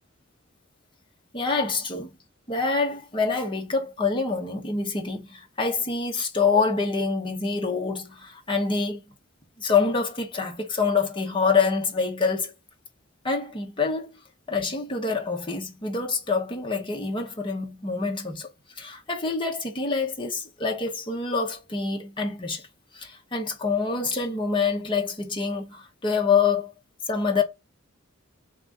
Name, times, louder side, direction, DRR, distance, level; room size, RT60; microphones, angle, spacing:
voice 1, 1.3-2.1 2.5-9.0 9.6-12.5 13.2-14.2 14.5-18.5 18.8-22.7 22.9-26.7 27.1-27.4, left 4 dB, 25° left, 0.9 m, -26 dB
3.6 x 2.9 x 3.7 m
head